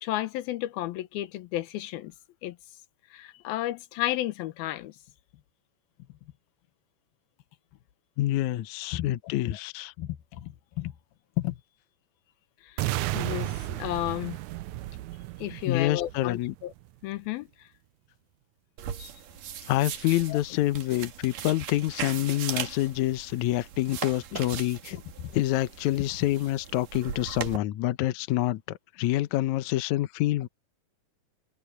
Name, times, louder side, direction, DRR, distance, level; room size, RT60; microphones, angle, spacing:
voice 1, 0.0-2.1 2.4-2.6 3.1-4.9 8.9-9.0 10.0-10.9 11.4-11.6 12.6-14.4 15.4-16.7 17.0-17.5 19.0-19.1 20.3-20.4 25.2-25.3, left 15 dB, 90° left, 2.9 m, -32 dB
voice 2, 8.2-9.9 15.7-16.5 19.7-25.0 25.3-30.5, left 15 dB, 70° left, 1.9 m, -27 dB
sound 1, 12.8-16.8, right 16 dB, 85° right, 1.6 m, -33 dB
sound 2, 18.8-27.6, right 9 dB, 70° right, 3.2 m, -39 dB
omnidirectional pair, 4.1 m